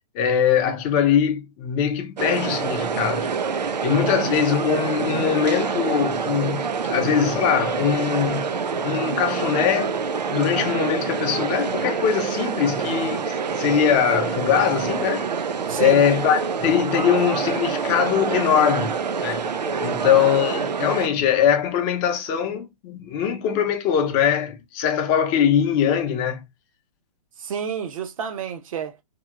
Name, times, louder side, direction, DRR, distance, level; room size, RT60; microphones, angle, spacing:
voice 1, 0.1-3.3 3.8-8.5 8.8-10.0 10.3-15.3 15.8-18.9 19.2-19.5 19.8-26.5, left 8 dB, 25° left, 0.7 m, -22 dB
sound 1, 2.2-21.1, right 5 dB, 85° right, 0.5 m, -26 dB
voice 2, 15.7-16.0 27.4-29.0, right 7 dB, 55° right, 0.8 m, -29 dB
2.8 x 2.8 x 2.4 m
hypercardioid pair, 130°, 21 cm